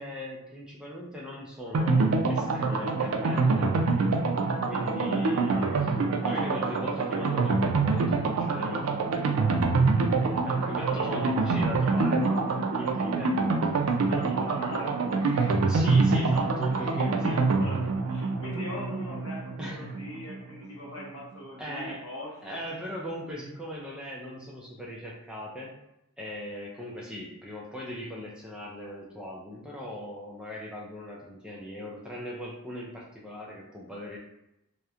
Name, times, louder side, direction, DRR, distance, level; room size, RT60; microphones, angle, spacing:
voice 1, 0.0-3.7 4.7-5.6 6.2-9.9 10.4-13.4 15.7-17.4 19.6-20.0 21.6-22.0 22.4-25.7 26.2-34.2, left 1 dB, 5° right, -5 dB, 0.3 m, -39 dB
sound 1, 1.7-20.4 20.6-20.7 21.0-21.1, right 3 dB, 80° right, 0.4 m, -26 dB
voice 2, 5.5-5.9 10.9-11.7 14.0-15.6 16.7-22.6, left 1 dB, 60° left, -2 dB, 0.7 m, -40 dB
2.8 x 2.1 x 2.3 m, 0.85 s
head